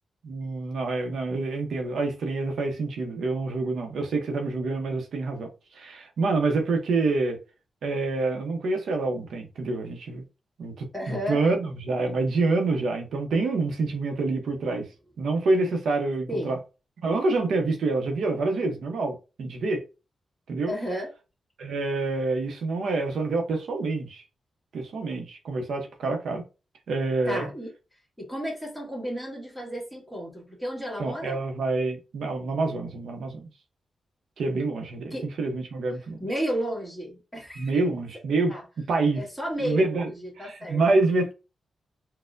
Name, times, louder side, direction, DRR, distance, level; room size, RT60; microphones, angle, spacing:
voice 1, 0.2-7.4 7.8-10.2 10.6-14.9 15.2-16.6 17.0-19.8 20.5-20.7 21.6-24.2 24.7-26.4 26.9-27.4 31.0-33.5 34.4-36.2 37.6-38.5 38.9-39.2 39.6-40.1 40.4-41.3, right 3 dB, 80° right, 0.7 m, -27 dB
voice 2, 10.9-11.4 16.3-16.5 20.7-21.1 27.2-27.7 28.2-31.4 35.1-35.3 36.2-37.7 38.5-38.6 39.1-40.8, equal, 5° left, 1.5 m, -32 dB
4.2 x 2.1 x 2.5 m
cardioid pair, 80°, 0 cm